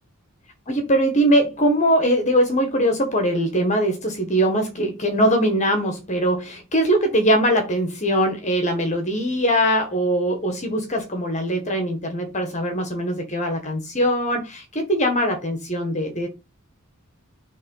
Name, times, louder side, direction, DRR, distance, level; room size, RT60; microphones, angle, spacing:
voice 1, 0.7-16.3, equal, 35° left, 1.5 m, -21 dB
6.7 x 3.5 x 5.5 m
head